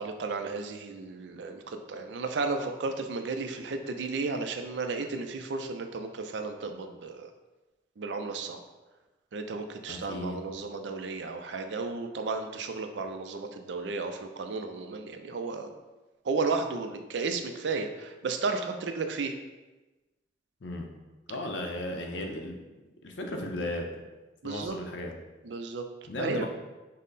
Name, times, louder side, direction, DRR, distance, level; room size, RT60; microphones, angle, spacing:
voice 1, 0.0-7.3 8.0-8.6 9.3-15.7 16.2-19.3 24.4-24.8 25.4-25.9 26.2-26.5, right 4 dB, 70° right, 6 dB, 0.4 m, -33 dB
voice 2, 9.9-10.4 20.6-20.9 21.3-22.6 23.0-23.9 24.4-25.1 26.1-26.5, left 1 dB, 80° left, 2 dB, 0.6 m, -35 dB
5.4 x 2.1 x 4.0 m, 1.1 s
head